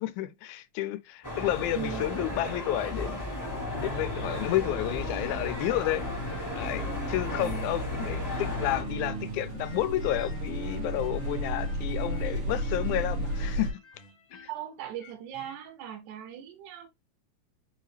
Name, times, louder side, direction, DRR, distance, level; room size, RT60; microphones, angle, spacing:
voice 1, 0.0-3.2 3.7-6.1 6.5-13.7 14.4-14.5, left 14 dB, 85° left, 2.0 m, -31 dB
sound 1, 1.2-8.8, left 1 dB, 15° left, 0.7 m, -35 dB
voice 2, 1.7-2.1 7.4-7.7 14.5-16.9, right 10 dB, 90° right, 2.2 m, -39 dB
sound 2, 3.5-13.7, equal, 55° right, 2.1 m, -34 dB
sound 3, 5.3-9.3 9.6-15.6, left 2 dB, 55° left, 1.6 m, -53 dB
5.2 x 2.8 x 3.2 m
omnidirectional pair, 3.4 m